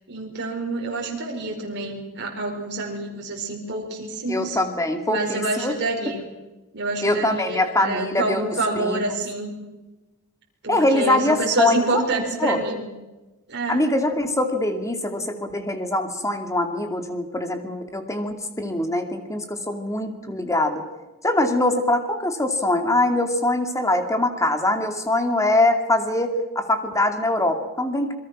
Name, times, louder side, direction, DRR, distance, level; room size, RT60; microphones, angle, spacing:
voice 1, 0.1-4.6 5.1-6.2 6.7-9.6 10.6-12.9 13.5-13.8 20.2-20.3, right 2 dB, 50° right, 0 dB, 5.0 m, -27 dB
voice 2, 4.3-5.8 7.0-8.4 8.7-9.2 10.7-12.0 12.4-12.6 13.7-20.8 21.2-28.1, left 1 dB, 15° left, 6 dB, 2.6 m, -23 dB
27.5 x 22.0 x 6.2 m, 1.1 s
head